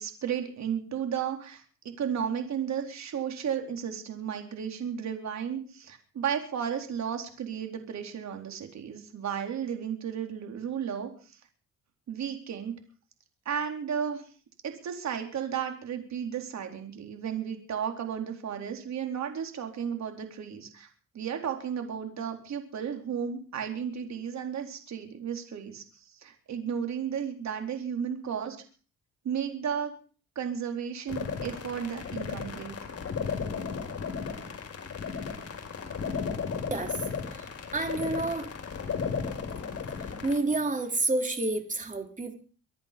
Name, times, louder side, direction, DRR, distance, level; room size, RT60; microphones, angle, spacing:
voice 1, 0.0-11.1 12.1-12.8 13.5-14.2 14.6-20.9 21.1-25.8 26.2-28.6 29.2-29.9 30.4-32.8, right 8 dB, 65° right, 5 dB, 4.3 m, -33 dB
sound 1, 31.1-40.4, left 5 dB, 50° left, 4.9 m, -35 dB
voice 2, 37.3-38.5 40.2-42.3, right 2 dB, 25° right, 5 dB, 3.9 m, -29 dB
25.0 x 10.5 x 5.4 m, 0.40 s
cardioid pair, 90°, 30 cm